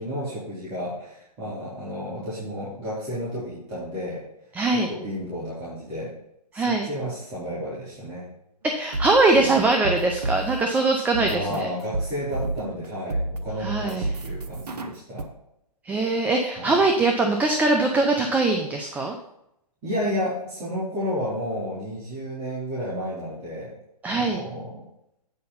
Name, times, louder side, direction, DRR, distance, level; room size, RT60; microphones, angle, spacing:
voice 1, 0.0-4.2 4.7-6.1 6.5-8.3 11.2-15.3 16.6-16.8 18.8-19.1 19.8-23.8 24.1-24.8, equal, 25° right, -9 dB, 3.9 m, -32 dB
voice 2, 4.5-4.9 6.5-6.9 8.6-11.7 13.6-14.1 15.8-19.1 24.0-24.4, right 3 dB, 10° right, 3 dB, 0.7 m, -22 dB
sound 1, 8.7-10.7 11.1-12.9 13.1-15.2, right 2 dB, 75° right, 1.2 m, -30 dB
8.8 x 5.5 x 5.5 m, 0.80 s
hypercardioid pair, 135°, 20 cm